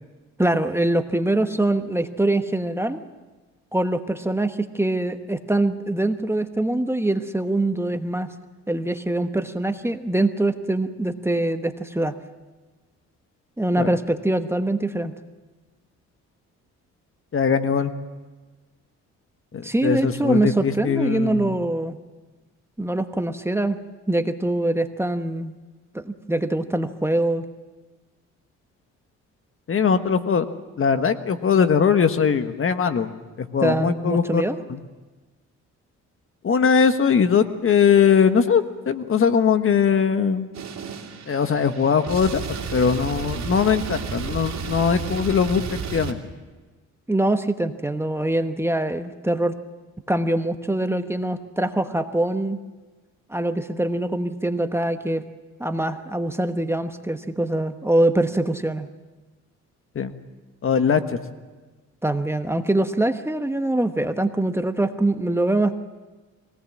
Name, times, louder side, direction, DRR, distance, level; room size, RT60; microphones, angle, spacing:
voice 1, 0.4-3.0 3.7-8.3 8.7-12.1 13.6-15.1 19.6-22.0 22.8-23.8 24.1-25.6 25.9-27.4 33.6-34.6 47.1-49.5 50.1-52.6 53.3-55.2 55.6-58.9 62.0-65.8, right 1 dB, 10° right, 8 dB, 1.1 m, -23 dB
voice 2, 17.3-17.9 19.5-21.5 29.7-30.4 30.8-33.1 33.4-34.4 34.7-34.8 36.4-40.5 41.3-42.4 42.7-45.6 45.9-46.2 59.9-60.1 60.6-61.2, left 6 dB, 45° left, 9 dB, 1.4 m, -20 dB
sound 1, 40.5-46.1, right 6 dB, 60° right, 2.9 m, -32 dB
23.5 x 18.0 x 7.4 m, 1.3 s
cardioid pair, 90°, 30 cm